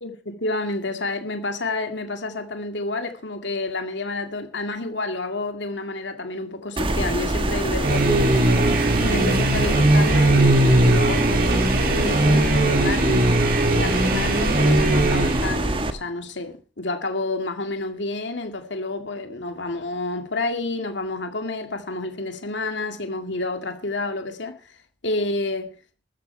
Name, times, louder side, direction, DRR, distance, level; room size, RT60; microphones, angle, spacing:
voice 1, 0.0-8.7 9.0-13.3 13.7-24.8 25.0-25.7, left 2 dB, 75° left, 2.1 m, -29 dB
sound 1, 6.8-15.9, right 1 dB, 30° right, 1.4 m, -25 dB
sound 2, 7.8-15.6, right 2 dB, 50° right, 2.4 m, -20 dB
14.0 x 14.0 x 4.5 m
head